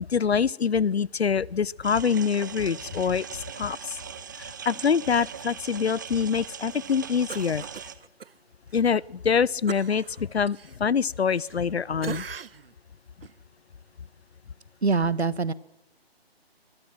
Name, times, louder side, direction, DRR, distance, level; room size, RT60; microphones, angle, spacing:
voice 1, 0.1-4.0 4.4-7.6 8.7-12.2, left 6 dB, 75° left, 26 dB, 0.7 m, -25 dB
sound 1, 1.8-7.9, right 7 dB, 20° right, 0.7 m, -40 dB
Cough, 7.3-8.3 8.7-8.9 9.7-11.7 12.0-12.7 13.2-13.4, right 6 dB, 65° right, 0.7 m, -40 dB
voice 2, 14.8-15.5, right 4 dB, 85° right, 18 dB, 1.3 m, -24 dB
22.5 x 20.0 x 6.2 m, 0.88 s
figure-of-eight pair, 155°, 32 cm